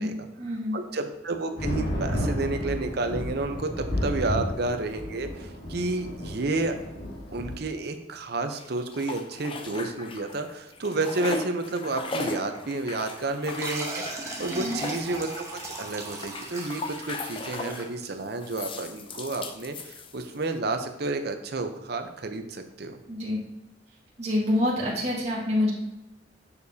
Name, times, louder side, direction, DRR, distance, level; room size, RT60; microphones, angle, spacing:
voice 1, 0.0-0.8 14.5-14.8 23.1-23.4 24.2-25.7, left 1 dB, 35° right, -5 dB, 1.8 m, -27 dB
voice 2, 0.7-6.7 7.3-23.0, right 2 dB, 60° right, 6 dB, 0.7 m, -31 dB
sound 1, 1.6-7.6, equal, 70° left, 1.7 m, -32 dB
sound 2, 8.5-10.5 10.7-17.9 18.4-20.4, left 3 dB, 30° left, 0.5 m, -38 dB
sound 3, 13.4-18.6, right 2 dB, 15° right, 1.0 m, -38 dB
6.9 x 6.8 x 2.8 m, 0.96 s
head